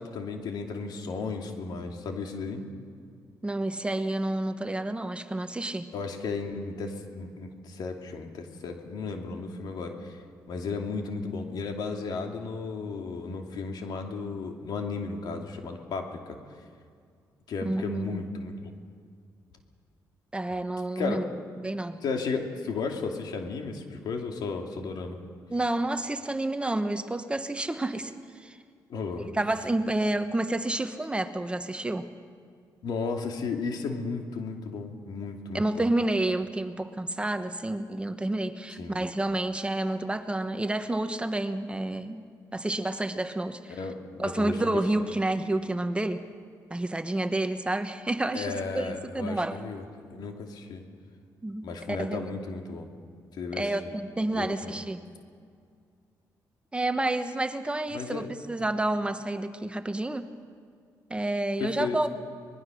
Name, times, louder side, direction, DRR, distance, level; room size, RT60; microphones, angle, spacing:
voice 1, 0.0-2.6 5.9-10.2 10.5-16.4 17.5-18.5 21.0-21.2 22.0-25.2 28.9-29.3 32.8-35.9 38.8-39.0 43.7-44.7 48.3-49.8 50.1-50.8 51.6-52.9 53.3-53.9 54.3-54.8 57.9-58.3 61.6-62.0, left 4 dB, 70° left, 3 dB, 2.6 m, -34 dB
voice 2, 3.4-5.9 17.6-18.2 20.3-21.3 21.6-22.0 25.5-28.6 29.2-32.1 35.5-42.2 42.5-43.8 44.2-46.2 46.7-49.6 51.4-52.2 53.5-55.0 56.7-60.3 61.1-62.1, right 2 dB, 15° right, 9 dB, 1.1 m, -29 dB
24.0 x 20.5 x 6.4 m, 2.2 s
cardioid pair, 90°, 7 cm